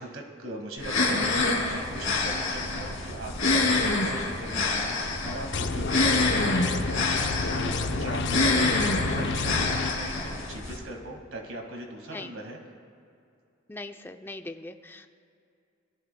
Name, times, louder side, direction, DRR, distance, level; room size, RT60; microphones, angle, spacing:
voice 1, 0.0-12.6, right 1 dB, 75° right, 2 dB, 1.7 m, -40 dB
sound 1, 0.8-10.8, left 3 dB, 75° left, 2.6 m, -27 dB
sound 2, 1.8-9.8, right 2 dB, 60° right, 0.6 m, -43 dB
sound 3, 5.5-9.9, left 3 dB, 60° left, 0.6 m, -30 dB
voice 2, 13.7-15.1, left 2 dB, 10° left, 6 dB, 0.4 m, -40 dB
22.5 x 14.0 x 2.2 m, 2.5 s
head